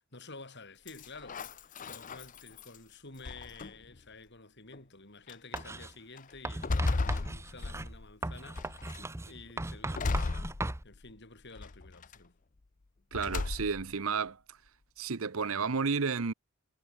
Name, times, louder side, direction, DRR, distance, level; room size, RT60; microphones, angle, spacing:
voice 1, 0.0-10.5 10.8-12.4, left 3 dB, 55° left, 5.2 m, -51 dB
sound 1, 0.9-2.8 3.2-4.0 4.7-4.8 5.3-5.6 6.2-8.1 8.6-9.1 9.9-11.1 11.6-12.2 13.1-13.9, left 3 dB, 35° left, 0.6 m, -35 dB
Writing, 5.5-5.9 6.4-10.8, right 2 dB, 15° right, 0.7 m, -38 dB
voice 2, 13.1-14.4 15.0-16.3, right 5 dB, 75° right, 0.8 m, -31 dB
head